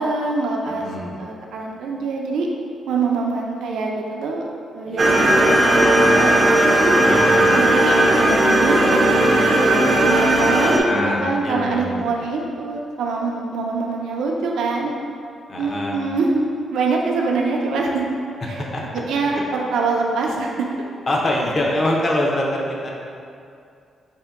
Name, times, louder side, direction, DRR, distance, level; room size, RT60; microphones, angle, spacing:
voice 1, 0.0-0.9 1.2-2.5 2.9-4.4 4.7-7.0 7.6-14.9 15.6-18.1 18.4-18.7 18.9-20.7, right 3 dB, 90° right, -1 dB, 0.4 m, -24 dB
voice 2, 0.8-1.2 4.9-5.2 7.0-7.6 10.8-12.0 15.5-16.0 18.7-18.8 19.3-19.4 21.1-22.9, left 1 dB, 30° left, -2 dB, 0.6 m, -24 dB
sound 1, 5.0-10.8, right 1 dB, 30° right, 0.4 m, -16 dB
5.0 x 2.7 x 3.5 m, 2.4 s
wide cardioid pair, 170°, 0 cm